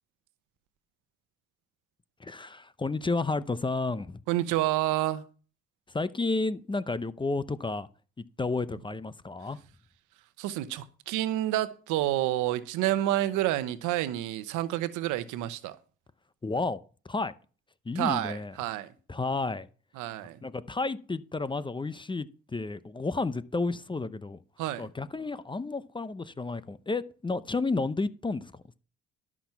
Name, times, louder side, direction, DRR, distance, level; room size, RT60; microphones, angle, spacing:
voice 1, 2.2-4.2 5.9-7.9 8.4-9.6 16.4-17.3 17.8-18.6 19.1-19.7 20.4-24.4 24.8-28.5, left 3 dB, 15° left, 0.6 m, -31 dB
voice 2, 4.3-5.2 10.4-15.8 18.0-18.9 20.0-20.4 24.6-24.9, right 14 dB, 85° right, 0.9 m, -29 dB
12.0 x 6.1 x 5.8 m
supercardioid pair, 80°, 30 cm